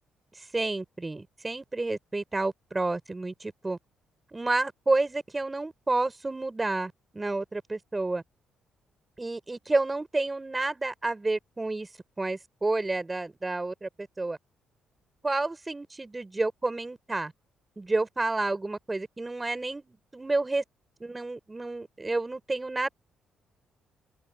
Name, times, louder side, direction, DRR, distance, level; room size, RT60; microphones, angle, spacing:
voice 1, 0.3-3.8 4.3-8.2 9.2-11.9 12.2-14.4 15.2-17.3 17.8-20.6 21.0-22.9, right 2 dB, 20° right, 6.4 m, -30 dB
cardioid pair, 90°, 0 cm